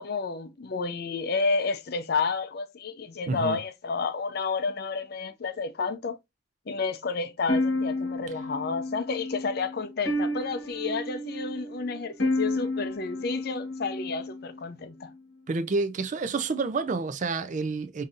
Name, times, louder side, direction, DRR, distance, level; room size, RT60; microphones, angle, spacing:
voice 1, 0.0-6.2 6.7-15.1, left 4 dB, 60° left, 0.5 m, -31 dB
voice 2, 3.3-3.6 15.5-18.0, right 4 dB, 45° right, 0.4 m, -29 dB
sound 1, 7.5-14.6, left 2 dB, 80° left, 1.3 m, -31 dB
5.2 x 2.7 x 2.4 m
head